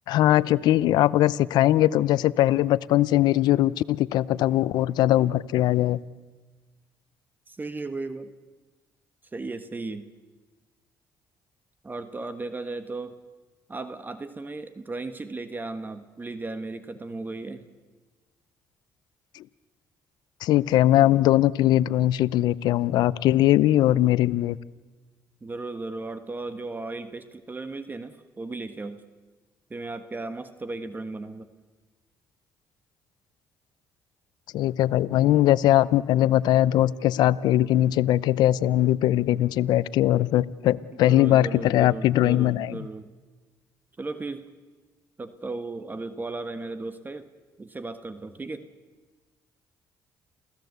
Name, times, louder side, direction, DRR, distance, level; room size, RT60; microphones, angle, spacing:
voice 1, 0.1-6.0 19.3-19.4 20.4-24.6 34.5-42.8, left 14 dB, 80° left, 20 dB, 0.6 m, -21 dB
voice 2, 7.5-8.3 9.3-10.1 11.8-13.1 13.7-17.7 25.4-29.0 29.7-31.5 40.9-43.2 44.0-44.5 45.2-47.3 47.6-48.7, right 3 dB, 25° right, 11 dB, 1.4 m, -35 dB
28.0 x 16.5 x 8.1 m, 1.3 s
supercardioid pair, 70°, 7 cm